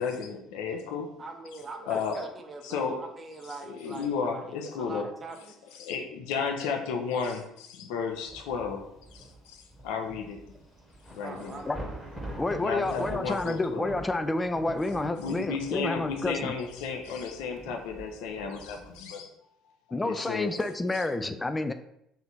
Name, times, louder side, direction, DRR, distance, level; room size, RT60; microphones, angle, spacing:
voice 1, 0.0-1.2 1.9-2.2 2.6-3.0 3.7-5.1 5.7-8.8 9.1-10.4 11.1-11.6 12.6-13.9 15.2-19.3 19.9-20.6, left 5 dB, 60° left, 4 dB, 0.6 m, -33 dB
voice 2, 1.2-5.5 10.8-10.9 11.2-11.7, right 3 dB, 25° right, 4 dB, 0.6 m, -42 dB
Thunder / Rain, 8.1-19.0, right 1 dB, 5° right, 1.0 m, -44 dB
voice 3, 12.4-16.5 19.9-21.7, left 2 dB, 15° left, 10 dB, 0.3 m, -29 dB
3.3 x 2.8 x 4.2 m, 0.79 s
figure-of-eight pair, 55°, 0 cm